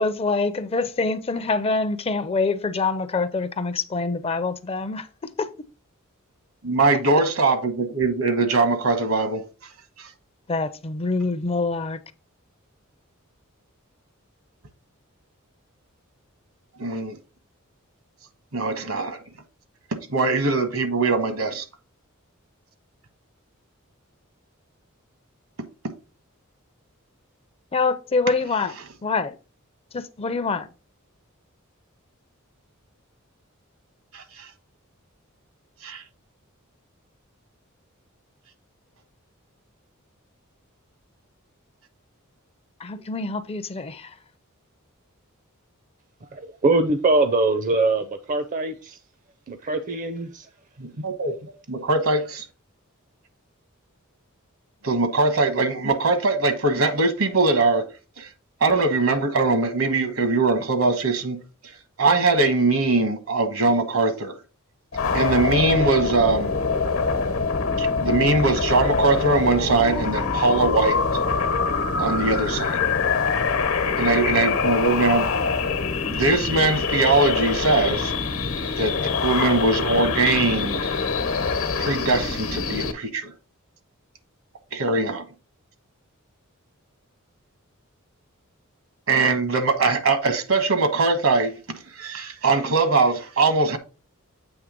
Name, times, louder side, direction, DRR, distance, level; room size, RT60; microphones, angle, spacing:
voice 1, 0.0-5.1 5.4-5.5 10.5-12.0 27.7-28.7 29.0-29.4 29.9-30.7 42.8-44.1, left 3 dB, 25° left, 0.5 m, -25 dB
voice 2, 6.6-9.4 10.0-10.1 16.8-17.2 18.5-19.2 19.9-21.6 25.8-25.9 34.1-34.5 35.8-36.0 50.8-52.5 54.8-57.9 58.2-58.3 58.6-61.7 62.0-64.3 65.1-66.5 67.8-71.0 72.0-72.8 74.0-75.3 76.0-78.1 78.8-79.0 79.2-80.9 81.8-83.3 84.7-85.3 89.1-91.5 91.9-93.8, right 3 dB, 70° right, 1.2 m, -21 dB
voice 3, 46.2-49.0 49.5-50.5, right 2 dB, 40° right, 0.5 m, -23 dB
sound 1, 64.9-82.9, left 4 dB, 75° left, 1.0 m, -24 dB
8.0 x 3.2 x 5.1 m
head